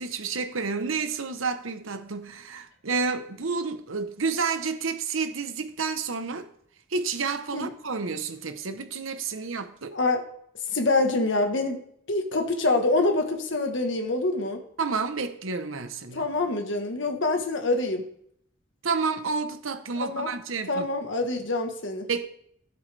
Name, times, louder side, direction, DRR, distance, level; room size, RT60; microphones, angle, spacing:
voice 1, 0.0-6.5 6.9-10.0 14.8-16.3 18.8-20.9 22.1-22.3, right 4 dB, 75° right, 0.9 m, -30 dB
voice 2, 9.9-10.2 10.7-11.8 12.1-14.6 16.1-18.0 20.0-20.3 20.7-22.1, left 2 dB, 65° left, 1.3 m, -25 dB
12.5 x 7.9 x 3.4 m
head